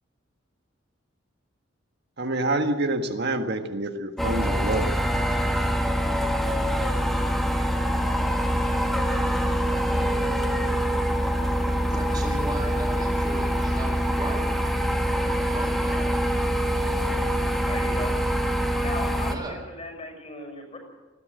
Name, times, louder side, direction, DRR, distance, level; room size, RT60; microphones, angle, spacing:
voice 1, 2.2-5.0 5.4-5.6, right 2 dB, 55° right, 6 dB, 1.7 m, -27 dB
sound 1, 4.2-19.4, equal, ahead, 1.8 m, -24 dB
voice 2, 11.9-14.4 15.2-16.0 19.3-19.6, right 2 dB, 20° right, -2 dB, 3.9 m, -36 dB
voice 3, 17.6-18.2 18.8-20.8, left 2 dB, 35° left, 3 dB, 6.7 m, -37 dB
20.0 x 16.0 x 8.0 m, 1.3 s
head